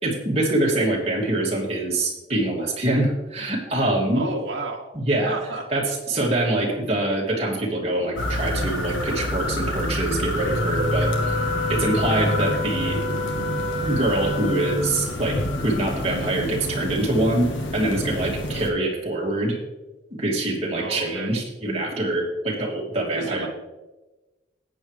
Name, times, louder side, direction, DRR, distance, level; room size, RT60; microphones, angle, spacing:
voice 1, 0.0-4.2 4.9-5.4 5.7-13.0 13.8-19.6 20.2-23.5, right 1 dB, 30° right, -3 dB, 2.5 m, -24 dB
voice 2, 4.1-4.9 5.2-5.7 20.7-21.3 23.1-23.5, right 2 dB, 60° right, -3 dB, 1.3 m, -31 dB
sound 1, 8.2-18.7, left 1 dB, 80° left, 1.6 m, -27 dB
Wind instrument woodwind instrument, 10.4-15.0, left 2 dB, 60° left, 1.6 m, -30 dB
14.0 x 9.5 x 3.3 m, 1.1 s
head